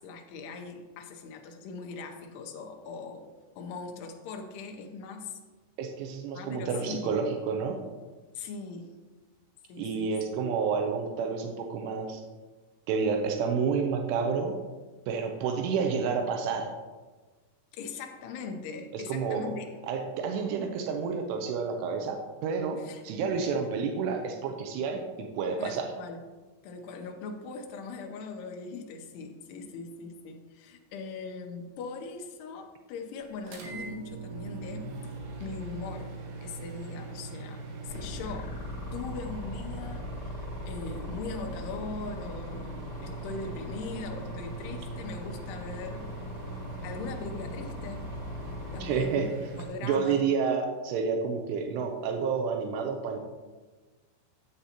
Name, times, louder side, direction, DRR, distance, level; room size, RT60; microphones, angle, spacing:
voice 1, 0.0-3.3 3.6-5.4 6.3-7.2 8.3-8.9 9.7-10.2 17.7-19.7 22.8-23.0 23.4-23.5 25.6-26.2 26.6-34.9 35.4-36.1 36.4-38.5 38.9-46.1 46.8-48.0 48.7-49.3 49.5-50.2, left 4 dB, 85° left, 3 dB, 2.3 m, -40 dB
voice 2, 5.8-7.8 9.8-12.2 12.9-14.6 15.1-16.7 18.9-19.5 19.9-25.9 48.8-49.3 49.8-53.2, right 5 dB, 90° right, 4 dB, 2.4 m, -30 dB
sound 1, 33.5-49.7, right 3 dB, 70° right, 2.9 m, -41 dB
sound 2, 37.9-49.0, left 2 dB, 60° left, 2.0 m, -41 dB
9.7 x 7.9 x 2.9 m, 1.3 s
omnidirectional pair, 5.7 m